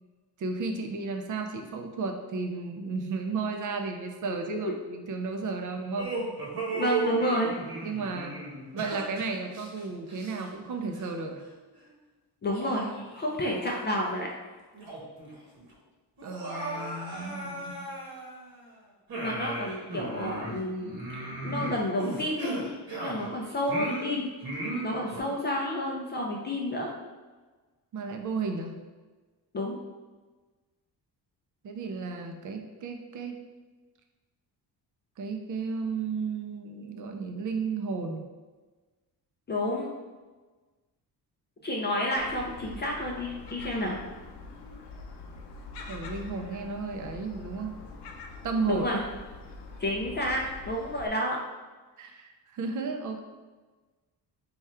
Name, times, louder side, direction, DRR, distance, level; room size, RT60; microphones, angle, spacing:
voice 1, 0.4-6.1 7.8-8.4 8.7-11.4 16.2-17.9 27.9-28.8 31.6-33.4 35.2-38.3 45.9-47.7 48.4-48.9 52.0-53.2, right 4 dB, 50° right, 4 dB, 0.5 m, -33 dB
voice 2, 4.4-4.7 6.7-7.5 12.4-12.9 13.1-14.3 19.2-20.9 21.2-22.6 23.0-24.3 24.8-26.9 29.5-29.8 39.5-39.9 41.6-44.0 48.7-49.0 49.8-51.4, left 1 dB, 30° left, -2 dB, 0.3 m, -30 dB
sound 1, 6.0-10.7 10.9-11.2 11.8-11.9 12.5-13.8 14.2-14.3 14.7-15.3 15.6-15.7 16.2-18.6 19.1-23.3 23.7-25.2, right 2 dB, 65° right, 1.1 m, -36 dB
Gull seagull, 42.2-51.1, left 3 dB, 75° left, 0.6 m, -44 dB
3.4 x 2.3 x 4.2 m, 1.3 s
cardioid pair, 150°, 41 cm